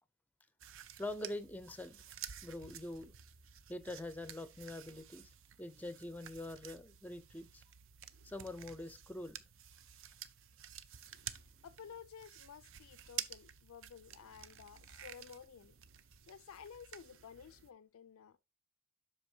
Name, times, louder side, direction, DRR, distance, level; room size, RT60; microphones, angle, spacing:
sound 1, 0.6-17.7, right 10 dB, 60° right, 0.5 m, -51 dB
voice 1, 1.0-2.0 2.4-3.1 3.7-5.3 5.6-7.6 8.2-9.4, left 1 dB, 5° left, 0.5 m, -44 dB
voice 2, 11.6-15.7 16.3-18.4, left 7 dB, 65° left, 0.4 m, -53 dB
7.9 x 6.0 x 2.7 m
head